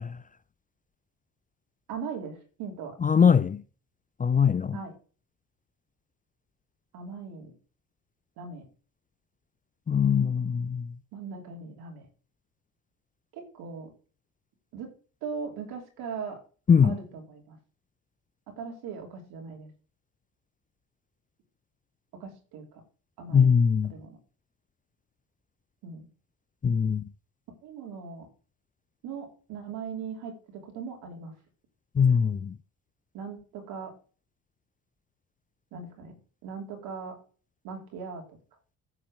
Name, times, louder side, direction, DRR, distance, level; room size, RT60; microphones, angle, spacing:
voice 1, 1.9-3.0 4.7-4.9 6.9-7.5 8.4-8.6 11.1-12.1 13.3-13.9 14.7-14.9 15.2-16.4 16.8-17.6 18.5-19.7 22.2-22.8 23.2-23.5 23.8-24.2 25.8-26.1 27.6-28.3 29.0-31.3 33.1-33.9 35.7-36.1 36.4-37.2 37.6-38.4, right 5 dB, 75° right, 3.3 m, -39 dB
voice 2, 3.0-3.6 4.2-4.8 9.9-10.8 16.7-17.0 23.3-23.9 26.6-27.0 32.0-32.5, left 6 dB, 20° left, 0.5 m, -21 dB
9.9 x 4.4 x 6.3 m
supercardioid pair, 65°, 38 cm